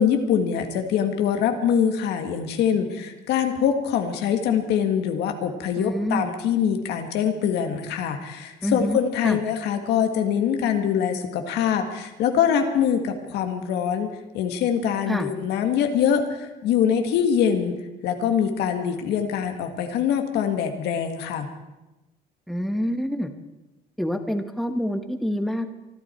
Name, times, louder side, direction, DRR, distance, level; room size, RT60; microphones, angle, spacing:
voice 1, 0.0-21.5, left 8 dB, 80° left, 5 dB, 1.8 m, -24 dB
voice 2, 5.8-6.3 8.6-9.0 9.2-9.4 15.1-15.3 22.5-23.3 24.0-25.7, equal, ahead, 6 dB, 1.2 m, -26 dB
24.0 x 12.0 x 4.5 m, 1.0 s
cardioid pair, 110°, 17 cm